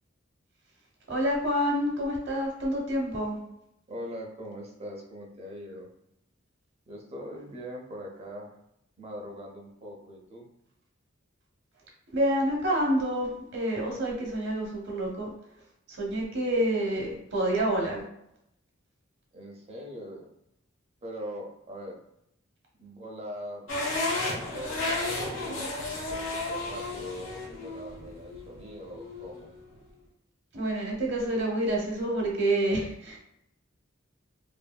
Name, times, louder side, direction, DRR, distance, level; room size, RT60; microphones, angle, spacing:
voice 1, 1.1-3.4 12.1-15.3 15.9-18.0 30.5-33.2, right 1 dB, 60° right, -1 dB, 0.8 m, -28 dB
voice 2, 3.9-5.9 6.9-8.5 9.0-10.5 19.3-20.3 21.0-22.0 22.8-23.9 24.4-29.5, equal, 30° right, 0 dB, 0.6 m, -42 dB
sound 1, 23.7-29.8, left 2 dB, 75° left, 1.1 m, -33 dB
3.0 x 2.6 x 2.2 m, 0.79 s
head